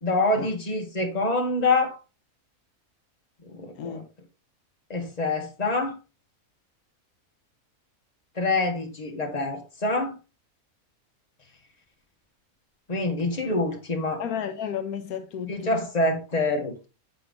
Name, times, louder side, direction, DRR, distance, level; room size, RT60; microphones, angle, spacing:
voice 1, 0.0-2.0 3.4-4.0 4.9-6.0 8.3-10.1 12.9-14.2 15.5-16.8, left 2 dB, 30° left, 1.6 m, -26 dB
voice 2, 14.2-15.8, left 8 dB, 80° left, 1.2 m, -32 dB
7.7 x 4.5 x 3.8 m
omnidirectional pair, 1.5 m